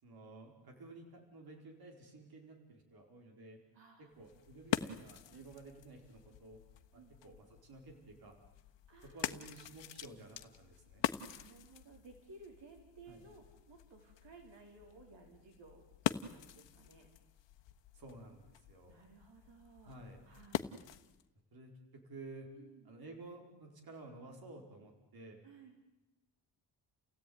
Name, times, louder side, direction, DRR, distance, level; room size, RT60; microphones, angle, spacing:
voice 1, 0.0-3.6 4.0-6.6 6.9-8.3 9.0-11.1 13.1-13.2 17.9-19.0 19.8-20.2 21.5-22.5 22.8-25.4, right 2 dB, 55° right, 2 dB, 5.0 m, -53 dB
voice 2, 3.7-4.1 5.3-5.5 6.9-7.1 8.9-9.5 11.2-17.1 18.9-20.0 20.2-20.7 22.5-22.9 25.4-25.8, right 3 dB, 80° right, 3 dB, 4.7 m, -58 dB
sound 1, 4.1-21.3, left 11 dB, 85° left, 1.2 m, -44 dB
30.0 x 17.0 x 9.6 m, 1.0 s
wide cardioid pair, 145°, 42 cm